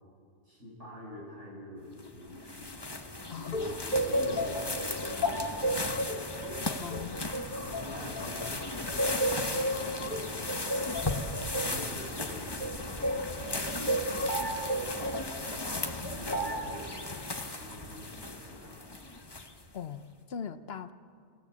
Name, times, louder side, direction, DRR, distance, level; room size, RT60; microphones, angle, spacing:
voice 1, 0.4-2.8 3.3-5.9 7.4-10.6 11.6-14.9 16.0-19.0, left 1 dB, 80° right, -4 dB, 8.3 m, -47 dB
sound 1, 2.0-19.8, left 2 dB, 20° left, 1.1 m, -37 dB
sound 2, 3.5-8.5 9.0-13.3 13.9-15.3 16.3-16.8, equal, 45° left, 2.1 m, -32 dB
voice 2, 6.8-7.3 19.7-20.9, left 7 dB, 60° left, 12 dB, 1.0 m, -40 dB
28.5 x 16.5 x 8.3 m, 2.4 s
omnidirectional pair, 1.2 m